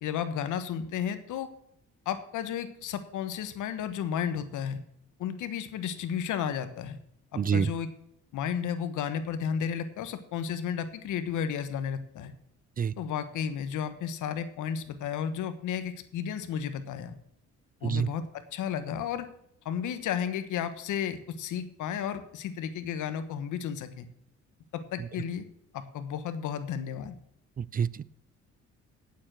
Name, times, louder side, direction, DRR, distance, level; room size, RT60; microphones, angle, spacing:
voice 1, 0.0-1.5 2.0-4.8 5.2-7.0 7.3-7.9 8.3-12.3 13.0-17.1 17.8-19.3 19.6-24.1 24.7-25.5 25.7-27.1, left 8 dB, 85° left, 10 dB, 1.3 m, -33 dB
voice 2, 7.3-7.7 12.8-12.9 17.8-18.1 25.0-25.1 27.6-28.2, right 7 dB, 30° right, 21 dB, 0.4 m, -28 dB
8.9 x 7.4 x 7.6 m, 0.70 s
cardioid pair, 90°, 30 cm